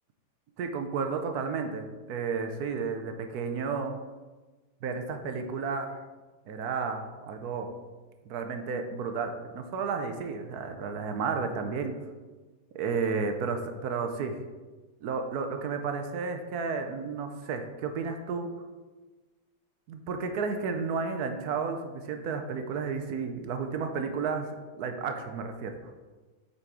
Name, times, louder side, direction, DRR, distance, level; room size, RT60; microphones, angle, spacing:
voice 1, 0.6-4.0 4.8-6.0 6.5-7.7 8.3-12.0 12.7-14.4 15.0-18.5 19.9-24.5 24.8-25.8, right 5 dB, 65° right, 6 dB, 1.0 m, -32 dB
7.7 x 4.2 x 4.7 m, 1.3 s
omnidirectional pair, 2.0 m